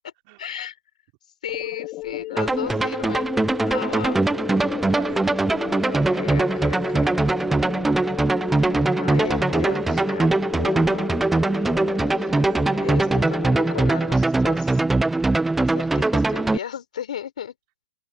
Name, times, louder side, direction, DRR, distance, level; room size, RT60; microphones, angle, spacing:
voice 1, 0.4-0.8 1.4-3.3 3.7-4.2 5.9-7.2 9.0-10.3 10.6-11.2 12.2-14.9 15.6-17.5, left 9 dB, 75° left, 4.1 m, -35 dB
sound 1, 1.5-13.9, left 19 dB, 30° left, 2.7 m, -34 dB
sound 2, 2.4-16.6, right 2 dB, 5° right, 0.5 m, -21 dB
voice 2, 3.9-4.7 4.9-7.0 12.4-12.8, right 31 dB, 40° right, 5.2 m, -43 dB
open air
hypercardioid pair, 145°, 4 cm